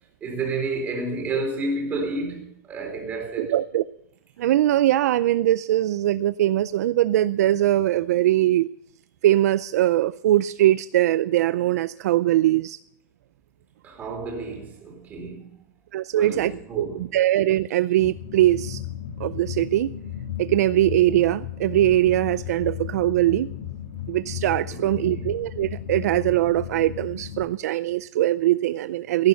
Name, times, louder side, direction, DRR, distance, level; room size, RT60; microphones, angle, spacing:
voice 1, 0.2-3.5 13.8-15.5 16.1-17.1 24.7-25.3, right 3 dB, 15° right, 3.9 m, -30 dB
voice 2, 3.4-3.8 4.4-8.7 9.2-12.8 15.9-16.5 16.8-18.8 19.2-19.9 20.4-23.5 24.1-29.3, right 14 dB, 65° right, 0.4 m, -21 dB
sound 1, 18.0-27.4, left 10 dB, 55° left, 5.6 m, -35 dB
16.5 x 10.5 x 5.7 m
supercardioid pair, 165°, 9 cm